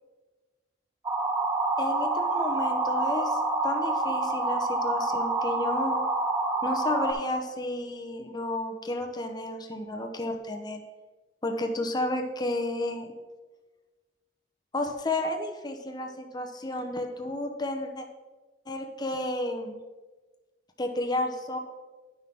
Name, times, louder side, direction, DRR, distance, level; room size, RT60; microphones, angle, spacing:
sound 1, 1.0-7.1, right 3 dB, 20° right, 2.0 m, -27 dB
voice 1, 1.8-6.0 6.6-10.8 11.4-13.1 14.7-18.0 18.7-19.8 20.8-21.6, left 1 dB, 25° left, 4 dB, 0.7 m, -32 dB
10.5 x 5.9 x 3.6 m, 1.3 s
head